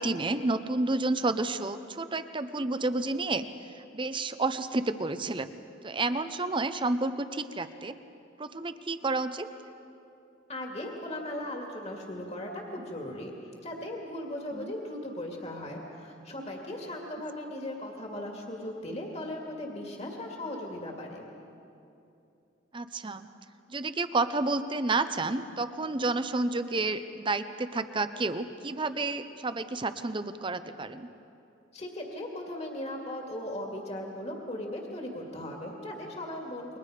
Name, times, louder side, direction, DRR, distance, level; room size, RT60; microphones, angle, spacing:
voice 1, 0.0-3.5 3.8-5.5 5.8-7.9 8.4-9.5 14.5-14.7 22.7-23.3 23.7-31.1, right 2 dB, 25° right, 11 dB, 0.7 m, -30 dB
voice 2, 10.5-13.3 13.6-21.3 31.7-36.8, left 1 dB, 35° left, 0 dB, 2.3 m, -38 dB
29.0 x 23.0 x 5.0 m, 2.7 s
head